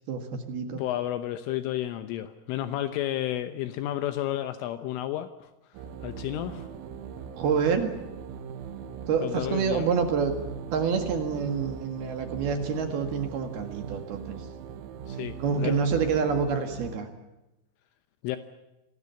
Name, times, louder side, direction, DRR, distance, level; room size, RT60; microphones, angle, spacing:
voice 1, 0.1-0.8 7.4-7.9 9.1-10.3 10.7-14.4 15.4-17.1, right 6 dB, 60° right, 6 dB, 3.3 m, -27 dB
voice 2, 0.7-5.5 6.0-6.7 9.2-9.9 15.1-15.4 15.6-15.8 18.2-18.4, left 13 dB, 80° left, 10 dB, 3.4 m, -31 dB
sound 1, 5.7-17.0, right 7 dB, 90° right, 4.0 m, -40 dB
26.5 x 19.0 x 8.4 m, 0.99 s
omnidirectional pair, 6.0 m